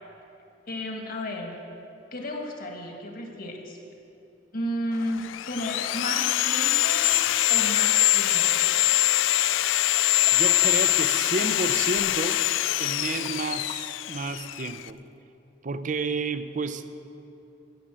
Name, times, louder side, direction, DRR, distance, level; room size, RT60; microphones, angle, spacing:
voice 1, 0.7-1.6 2.1-3.8 4.5-7.1 7.5-8.6, left 1 dB, 50° left, 2 dB, 1.7 m, -33 dB
Sawing, 5.0-14.9, left 16 dB, 80° left, 0.3 m, -24 dB
Liquid, 9.7-14.3 15.0-15.1, left 4 dB, 30° left, 0.5 m, -46 dB
voice 2, 10.3-12.4 12.8-15.0 15.6-16.9, right 3 dB, 40° right, 11 dB, 0.5 m, -31 dB
15.0 x 7.2 x 7.6 m, 2.8 s
head